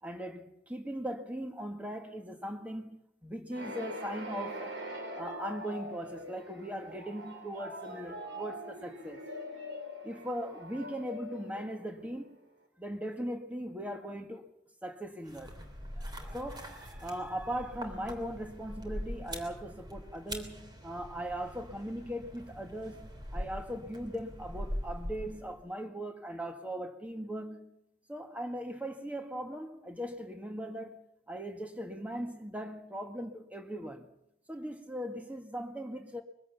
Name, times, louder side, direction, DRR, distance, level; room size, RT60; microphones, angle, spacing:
voice 1, 0.0-4.8 5.1-9.3 10.0-12.4 12.8-14.5 14.8-15.5 16.0-27.7 28.1-34.1 34.5-36.2, equal, 10° right, 1.6 m, -39 dB
sound 1, 3.5-12.3, equal, 75° right, 3.9 m, -43 dB
sound 2, 15.2-25.6, equal, 25° right, 3.2 m, -42 dB
22.5 x 16.5 x 7.0 m
head